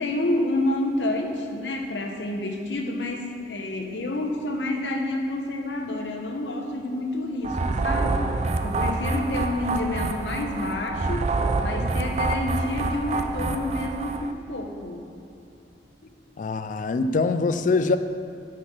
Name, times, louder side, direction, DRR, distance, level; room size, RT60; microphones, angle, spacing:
voice 1, 0.0-11.3 11.6-15.1 16.0-16.1, left 1 dB, 80° left, 2 dB, 0.9 m, -29 dB
sound 1, 7.4-14.3, right 3 dB, 40° right, 0.4 m, -27 dB
voice 2, 16.4-18.0, left 3 dB, 45° left, 10 dB, 0.3 m, -23 dB
6.3 x 6.1 x 5.8 m, 2.8 s
head